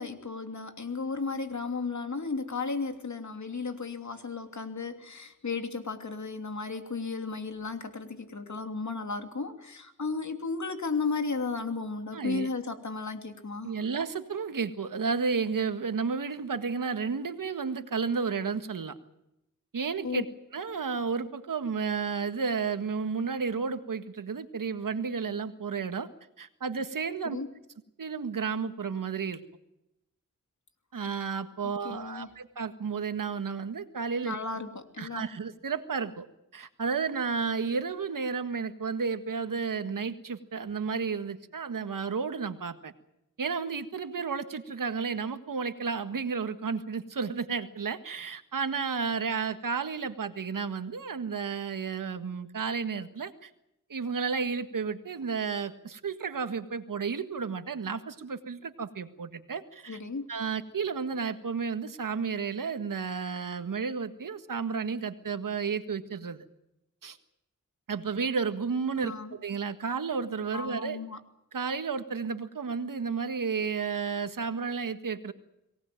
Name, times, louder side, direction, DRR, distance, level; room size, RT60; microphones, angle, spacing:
voice 1, 0.0-13.7 20.0-20.2 27.2-27.5 31.8-32.3 34.2-35.3 59.9-60.3 68.9-69.3 70.5-71.2, left 4 dB, 60° left, 6 dB, 3.1 m, -34 dB
voice 2, 12.1-12.5 13.6-18.9 19.7-20.2 20.5-26.1 26.4-27.4 28.0-29.4 30.9-34.4 35.0-36.2 36.5-42.9 43.4-53.5 53.9-60.0 60.3-66.4 67.0-67.2 67.9-71.0 71.5-75.3, right 5 dB, 80° right, 9 dB, 1.7 m, -32 dB
23.5 x 18.5 x 9.0 m, 0.86 s
cardioid pair, 55°, 32 cm